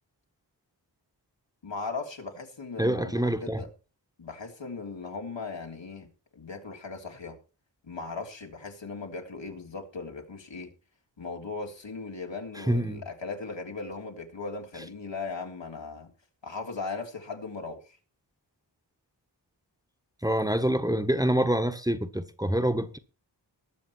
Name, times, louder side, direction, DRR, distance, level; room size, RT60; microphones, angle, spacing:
voice 1, 1.6-3.7 4.2-7.4 7.8-10.7 11.2-16.1 16.4-18.0, left 4 dB, 75° left, 3.3 m, -38 dB
voice 2, 2.8-3.6 12.7-13.0 20.2-23.0, right 1 dB, 10° right, 1.6 m, -26 dB
20.5 x 6.9 x 4.6 m
cardioid pair, 40°, 45 cm